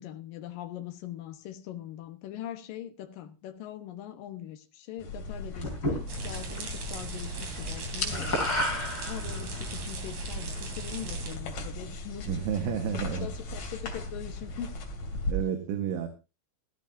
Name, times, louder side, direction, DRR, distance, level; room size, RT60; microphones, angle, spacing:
voice 1, 0.0-12.4 12.9-14.8, left 11 dB, 80° left, 6 dB, 2.0 m, -42 dB
sound 1, 5.0-15.3, left 2 dB, 40° left, 3.3 m, -38 dB
sound 2, 5.6-6.6 6.9-7.2 7.5-9.6, left 1 dB, 20° left, 4.0 m, -31 dB
sound 3, 6.1-11.3, right 3 dB, 40° right, 3.5 m, -39 dB
voice 2, 12.3-13.3 15.3-16.1, right 8 dB, 75° right, 6 dB, 3.8 m, -30 dB
15.5 x 15.5 x 2.7 m, 0.29 s
omnidirectional pair, 6.0 m